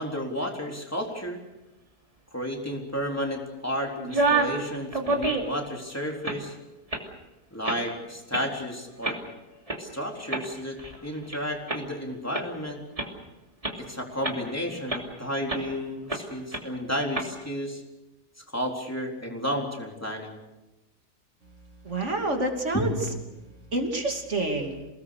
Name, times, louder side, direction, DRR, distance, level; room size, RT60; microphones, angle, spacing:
voice 1, 0.0-1.4 2.3-6.5 7.5-9.2 9.8-12.8 13.7-17.8 18.4-20.4 22.7-22.9, equal, 10° left, 0 dB, 3.8 m, -32 dB
sound 1, 4.0-4.6 4.9-5.7 6.1-6.4 6.9-7.1 7.6-7.9 8.3-8.4 9.0-9.2 9.7-9.8 10.3-11.4 11.7-11.8 12.3-12.4 13.0-13.1 13.6-13.7 14.2-14.5 14.9-15.0 15.5-15.7 16.1-16.2 16.5-16.6 17.1-17.3, right 3 dB, 20° right, 2.9 m, -27 dB
voice 2, 21.8-23.0 23.7-24.8, right 2 dB, 45° right, 3 dB, 3.2 m, -28 dB
28.5 x 19.0 x 6.7 m, 1.0 s
omnidirectional pair, 1.7 m